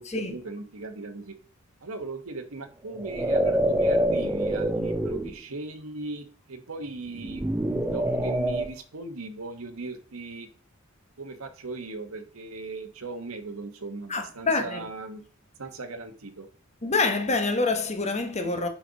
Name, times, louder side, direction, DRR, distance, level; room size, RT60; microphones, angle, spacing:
voice 1, 0.0-1.4 1.8-10.5 11.2-15.2 15.6-16.5, right 3 dB, 85° right, 1.1 m, -38 dB
sound 1, 2.9-5.4 7.2-8.7, right 1 dB, 10° right, 0.5 m, -26 dB
voice 2, 14.1-14.8 16.8-18.7, left 3 dB, 35° left, 1.1 m, -26 dB
7.7 x 5.0 x 4.0 m
head